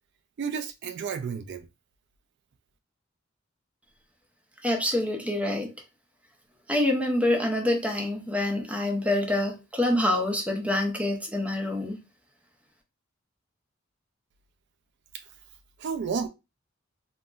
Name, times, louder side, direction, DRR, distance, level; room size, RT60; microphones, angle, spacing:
voice 1, 0.4-1.6 15.8-16.3, right 6 dB, 60° right, 0.3 m, -31 dB
voice 2, 4.6-5.7 6.7-12.0, left 1 dB, 5° right, 0.6 m, -26 dB
3.7 x 2.1 x 2.3 m
head